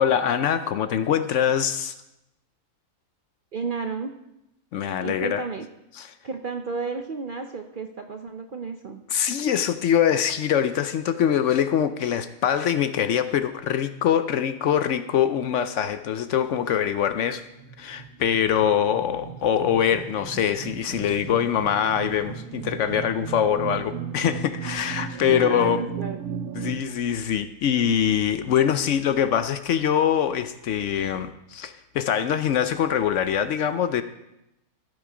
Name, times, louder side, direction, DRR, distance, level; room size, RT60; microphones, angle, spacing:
voice 1, 0.0-1.9 4.7-5.4 6.0-6.1 9.1-17.4 17.8-25.8 26.5-34.0, left 9 dB, 65° left, 11 dB, 0.8 m, -23 dB
voice 2, 3.5-4.1 5.0-5.7 6.2-9.0 25.3-26.2, right 4 dB, 55° right, 5 dB, 0.6 m, -32 dB
sound 1, 17.0-26.8, right 8 dB, 85° right, 1.2 m, -36 dB
16.0 x 6.4 x 4.9 m, 0.88 s
omnidirectional pair, 1.5 m